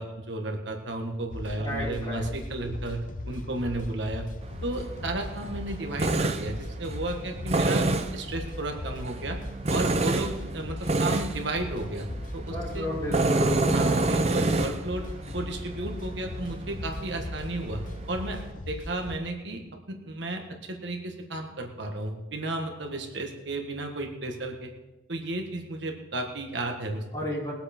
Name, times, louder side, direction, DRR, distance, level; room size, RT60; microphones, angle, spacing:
voice 1, 0.0-4.3 4.6-7.9 8.1-9.4 9.7-12.1 12.3-12.9 13.7-15.1 15.3-17.8 18.1-19.6 19.9-24.7 25.1-27.0, right 2 dB, 70° right, 3 dB, 1.5 m, -33 dB
sound 1, 1.3-19.2, left 1 dB, 45° left, 0.8 m, -39 dB
voice 2, 1.6-2.3 12.5-14.3 27.1-27.5, equal, 20° left, -8 dB, 5.7 m, -32 dB
Tools, 4.4-18.5, right 2 dB, 35° right, 0.7 m, -30 dB
20.5 x 7.8 x 4.4 m, 1.0 s
head